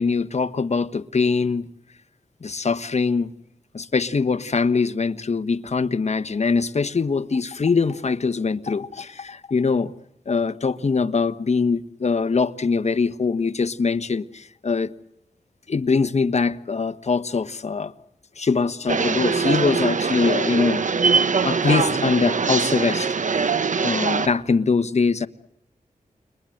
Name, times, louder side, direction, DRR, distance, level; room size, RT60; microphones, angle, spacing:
voice 1, 0.0-1.7 2.4-3.3 3.7-9.9 10.3-14.9 15.7-17.9 18.4-20.8 21.4-23.5 23.8-25.3, left 4 dB, 50° left, 1.3 m, -23 dB
sound 1, 18.9-24.3, right 5 dB, 60° right, 1.1 m, -22 dB
29.5 x 22.5 x 7.9 m
wide cardioid pair, 80°, 15 cm